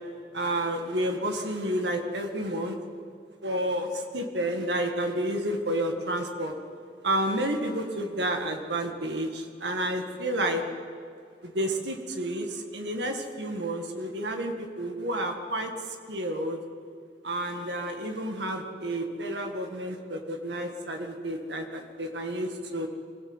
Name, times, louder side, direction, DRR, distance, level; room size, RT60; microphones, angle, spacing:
voice 1, 0.3-2.8 3.4-6.5 7.0-10.6 11.4-16.6 17.2-22.9, right 1 dB, 75° right, 4 dB, 2.0 m, -30 dB
24.5 x 16.5 x 8.0 m, 2.3 s
head